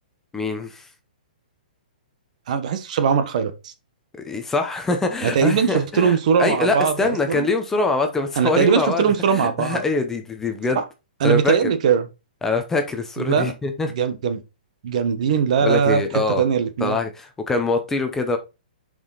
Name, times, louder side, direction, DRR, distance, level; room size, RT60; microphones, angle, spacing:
voice 1, 0.3-0.9 4.2-10.8 11.2-11.7 12.4-13.9 15.6-16.4 16.8-18.4, left 3 dB, 10° left, 0.8 m, -24 dB
voice 2, 2.5-3.7 5.2-7.4 8.4-9.8 11.2-12.0 13.2-13.5 13.9-14.4 14.8-17.0, right 7 dB, 50° right, 1.2 m, -20 dB
7.0 x 5.1 x 3.9 m
hypercardioid pair, 160°, 5 cm